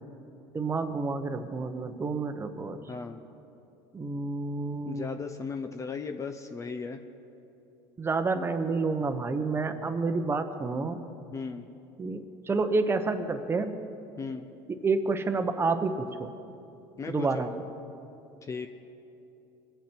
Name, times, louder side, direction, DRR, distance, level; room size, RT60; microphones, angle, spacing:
voice 1, 0.5-2.8 3.9-5.1 8.0-11.0 12.0-13.8 14.7-16.3 17.1-17.5, right 3 dB, 20° right, 9 dB, 0.9 m, -29 dB
voice 2, 2.9-3.2 4.8-7.0 11.3-11.7 14.2-14.5 17.0-17.5 18.4-18.7, left 5 dB, 25° left, 7 dB, 0.7 m, -36 dB
22.5 x 8.6 x 4.5 m, 2.8 s
supercardioid pair, 115°, 12 cm